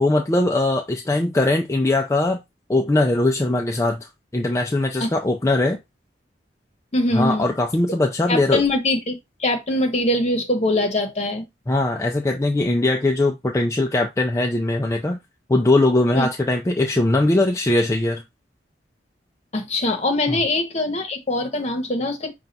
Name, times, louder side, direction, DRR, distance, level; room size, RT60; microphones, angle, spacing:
voice 1, 0.0-2.4 2.7-5.8 7.1-8.6 11.7-15.2 15.5-18.2 20.3-20.4, left 2 dB, 15° left, 0.4 m, -20 dB
voice 2, 6.9-7.4 8.3-11.4 16.1-16.3 19.5-22.3, left 2 dB, 40° left, 0.9 m, -22 dB
5.5 x 2.3 x 4.0 m
head